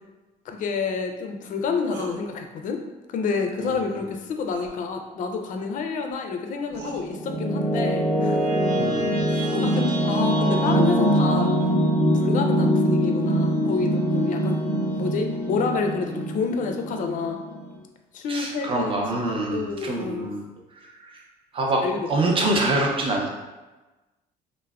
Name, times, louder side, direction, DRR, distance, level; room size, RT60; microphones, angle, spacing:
voice 1, 0.5-2.8 3.1-8.7 9.3-11.5 12.1-14.6 14.9-17.4 18.1-20.3 21.8-22.4, left 4 dB, 50° left, 4 dB, 0.4 m, -29 dB
sound 1, 1.9-2.2 4.5-4.8 6.1-6.2 6.7-7.0 9.0-9.9, right 4 dB, 80° right, 0.6 m, -38 dB
sound 2, 6.7-17.8, equal, 55° right, 1.0 m, -23 dB
voice 2, 8.8-9.1 18.3-20.4 20.8-21.2 21.5-21.8 22.1-23.3, right 2 dB, 30° right, 0 dB, 0.5 m, -25 dB
3.3 x 2.0 x 2.3 m, 1.1 s
cardioid pair, 110°, 17 cm